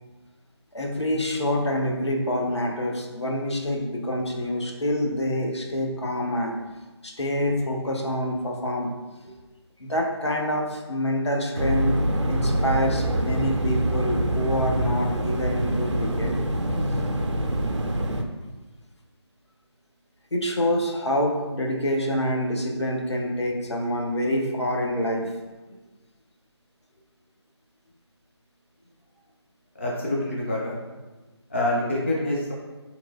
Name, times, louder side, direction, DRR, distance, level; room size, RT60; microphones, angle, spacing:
voice 1, 0.7-6.6 7.0-8.9 9.2-9.3 9.8-16.3 20.3-25.3, left 1 dB, 70° left, 0 dB, 0.6 m, -26 dB
sound 1, 11.5-18.2, right 1 dB, 80° right, 0.4 m, -25 dB
voice 2, 29.8-30.8 31.5-32.5, left 1 dB, 25° left, -4 dB, 0.4 m, -26 dB
3.7 x 3.0 x 2.3 m, 1.2 s
figure-of-eight pair, 155°, 15 cm